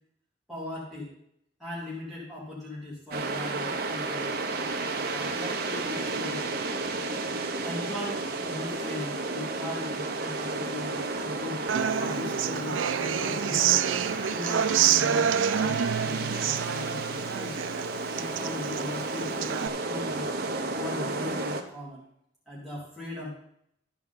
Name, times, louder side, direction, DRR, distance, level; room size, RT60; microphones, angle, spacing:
voice 1, 0.5-1.1 1.6-4.4 4.9-6.8 7.6-11.6 11.9-13.9 14.3-17.7 18.1-20.3 20.7-22.0 22.5-23.3, left 2 dB, ahead, -9 dB, 2.6 m, -39 dB
sound 1, 3.1-21.6, right 3 dB, 55° right, 1.0 m, -32 dB
Human voice / Acoustic guitar, 11.7-19.7, right 9 dB, 90° right, 0.4 m, -28 dB
13.5 x 4.8 x 5.6 m, 0.73 s
head